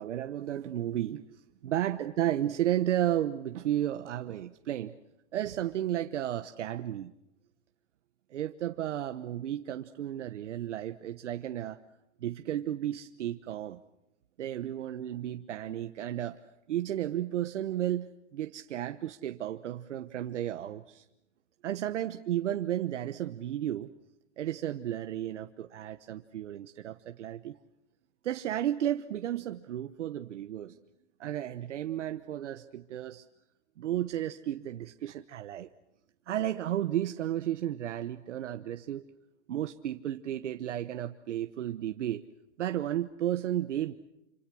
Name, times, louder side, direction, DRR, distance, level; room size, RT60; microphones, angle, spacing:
voice 1, 0.0-4.9 5.3-7.1 8.3-11.8 12.2-13.8 14.4-16.4 16.7-21.1 21.6-23.9 24.4-27.6 28.2-30.8 31.2-33.2 33.8-35.7 36.3-39.0 39.5-42.2 42.6-44.0, right 12 dB, 80° right, 8 dB, 1.2 m, -33 dB
27.5 x 26.5 x 6.3 m, 0.88 s
supercardioid pair, 170°, 35 cm